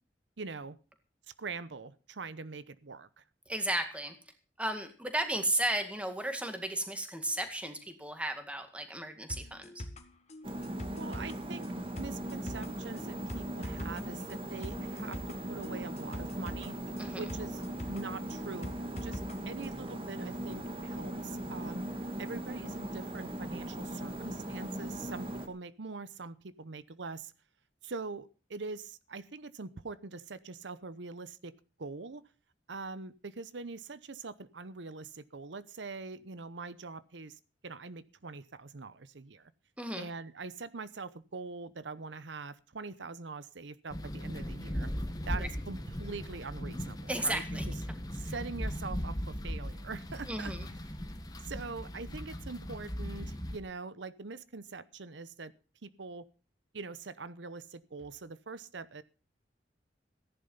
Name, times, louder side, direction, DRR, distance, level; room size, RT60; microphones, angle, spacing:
voice 1, 0.4-0.8 1.4-3.2 11.0-16.7 17.1-17.6 17.9-19.2 19.5-21.8 22.2-27.3 27.8-31.5 31.8-32.2 32.7-39.5 39.9-44.9 45.2-47.4 48.1-50.5 51.4-55.5 55.8-56.3 56.7-59.0, right 4 dB, 85° right, 15 dB, 0.8 m, -43 dB
voice 2, 3.5-4.2 4.6-9.8 17.0-17.3 39.8-40.1 45.3-45.5 47.1-47.7 48.2-48.3 50.3-50.7, right 1 dB, 5° right, 7 dB, 2.0 m, -34 dB
sound 1, 9.3-19.3 19.6-19.7, left 1 dB, 40° left, 1.7 m, -44 dB
sound 2, 10.4-25.5, right 1 dB, 30° right, 1.7 m, -39 dB
sound 3, 43.9-53.6, equal, 20° left, 1.5 m, -38 dB
15.0 x 10.5 x 5.6 m, 0.35 s
head